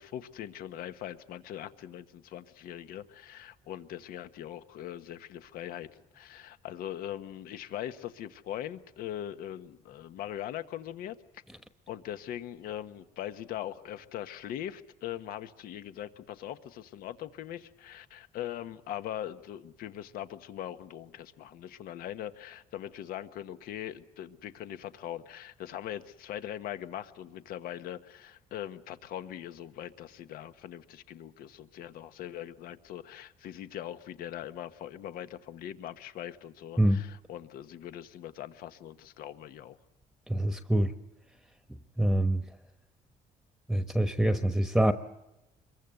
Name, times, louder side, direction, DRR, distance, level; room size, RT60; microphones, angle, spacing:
voice 1, 0.0-5.9 6.1-11.2 11.9-39.8, left 11 dB, 80° left, 10 dB, 1.3 m, -41 dB
voice 2, 40.3-40.9 42.0-42.4 43.7-44.9, right 1 dB, ahead, 8 dB, 1.1 m, -25 dB
26.0 x 22.5 x 7.8 m, 0.95 s
cardioid pair, 125°, 15 cm